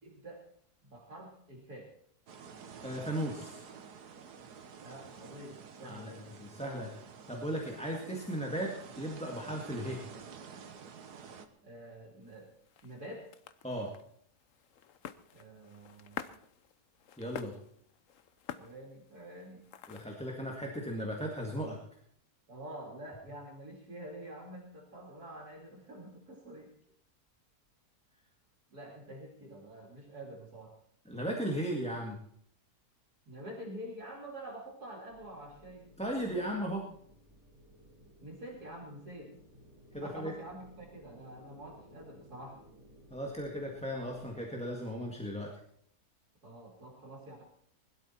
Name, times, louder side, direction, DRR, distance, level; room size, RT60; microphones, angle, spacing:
voice 1, 0.0-0.4 0.8-1.9 4.8-6.3 6.6-6.9 11.6-12.5 12.8-13.3 15.3-16.2 18.6-19.7 22.5-26.7 28.7-30.7 33.3-36.6 38.2-39.3 39.9-42.6 46.4-47.4, right 1 dB, 70° right, -1 dB, 3.2 m, -47 dB
sound 1, 2.3-11.5, right 6 dB, 90° right, 1.7 m, -50 dB
voice 2, 2.8-3.6 5.8-6.9 7.3-10.0 13.6-13.9 17.2-17.5 19.9-21.8 31.0-32.2 36.0-36.8 39.9-40.3 43.1-45.5, equal, 5° left, 0 dB, 1.8 m, -36 dB
sound 2, 12.2-20.3, left 9 dB, 60° left, 1.0 m, -49 dB
sound 3, 35.1-44.4, equal, 25° right, 4.7 m, -58 dB
20.5 x 12.0 x 4.3 m, 0.67 s
omnidirectional pair, 1.7 m